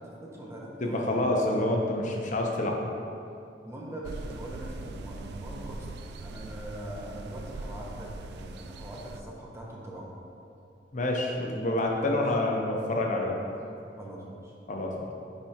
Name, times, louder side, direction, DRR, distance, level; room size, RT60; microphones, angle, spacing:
voice 1, 0.2-1.2 3.6-5.9 6.2-10.1 14.0-14.5, right 1 dB, 15° right, -3 dB, 0.8 m, -42 dB
voice 2, 0.8-2.8 10.9-13.4 14.7-15.1, left 1 dB, 45° left, 0 dB, 0.7 m, -27 dB
sound 1, 4.0-9.2, right 2 dB, 65° right, 0.3 m, -41 dB
10.0 x 3.4 x 2.9 m, 2.6 s
head